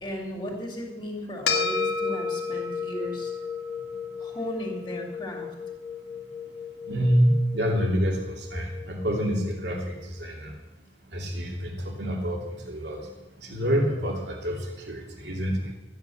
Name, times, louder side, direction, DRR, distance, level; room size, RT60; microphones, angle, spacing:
voice 1, 0.0-3.3 4.2-5.5, equal, 25° left, -1 dB, 2.8 m, -35 dB
sound 1, 1.5-10.1, left 5 dB, 65° left, 1.8 m, -33 dB
voice 2, 6.9-9.9 10.2-10.5 11.1-12.4 12.7-13.1 13.4-14.6 14.9-15.7, equal, 70° right, 0 dB, 2.6 m, -26 dB
13.5 x 9.5 x 7.1 m, 1.0 s
head